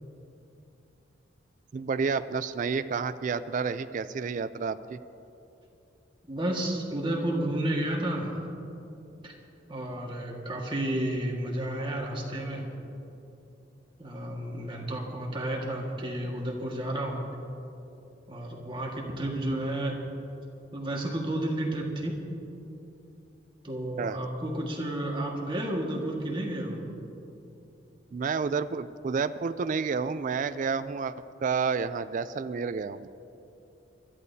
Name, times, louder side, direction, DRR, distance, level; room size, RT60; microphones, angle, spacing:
voice 1, 1.7-5.0 24.0-24.2 28.1-31.1 31.4-33.1, right 5 dB, 45° right, 11 dB, 0.3 m, -30 dB
voice 2, 6.2-8.3 9.2-9.4 9.7-12.7 14.0-17.2 18.3-20.0 20.7-22.2 23.6-26.8, right 1 dB, 25° right, -1 dB, 1.7 m, -31 dB
26.0 x 13.5 x 2.8 m, 2.8 s
head